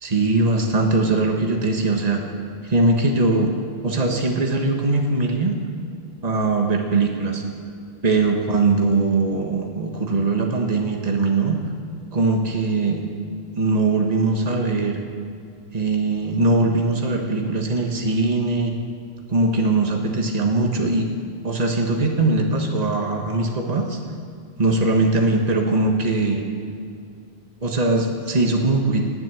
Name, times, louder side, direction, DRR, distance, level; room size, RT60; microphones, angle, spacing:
voice 1, 0.0-2.2 2.6-3.5 3.8-5.5 6.2-7.4 8.0-11.6 12.1-13.0 13.6-15.0 15.7-18.7 19.3-21.1 21.4-24.0 24.6-26.4 27.6-29.0, right 3 dB, 40° right, 2 dB, 1.5 m, -21 dB
16.0 x 7.8 x 9.9 m, 2.3 s
omnidirectional pair, 1.1 m